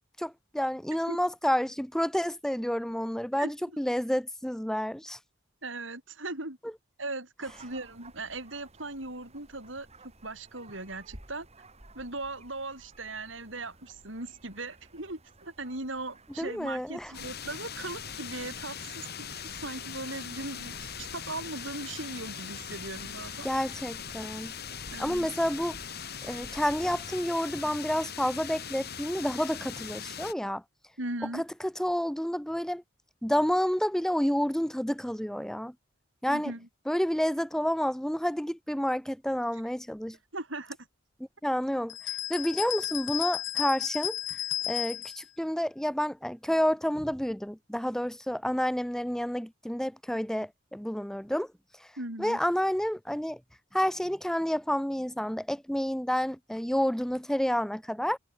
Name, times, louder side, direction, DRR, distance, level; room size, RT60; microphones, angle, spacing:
voice 1, 0.2-5.2 16.4-17.1 23.4-24.5 25.0-25.8 26.2-30.6 31.3-32.8 33.2-35.7 36.2-36.5 36.9-40.2 41.4-51.5 52.2-53.4 53.7-58.2, equal, 5° left, 0.6 m, -29 dB
voice 2, 5.6-6.6 7.0-9.9 10.2-11.5 11.9-23.5 24.9-25.3 31.0-31.4 36.3-36.7 40.3-40.8 52.0-52.4, right 2 dB, 70° right, 7.6 m, -38 dB
sound 1, 7.5-27.3, right 1 dB, 35° right, 6.9 m, -54 dB
sound 2, 17.1-30.3, left 7 dB, 55° left, 6.2 m, -40 dB
sound 3, 41.9-45.2, left 14 dB, 85° left, 3.1 m, -33 dB
head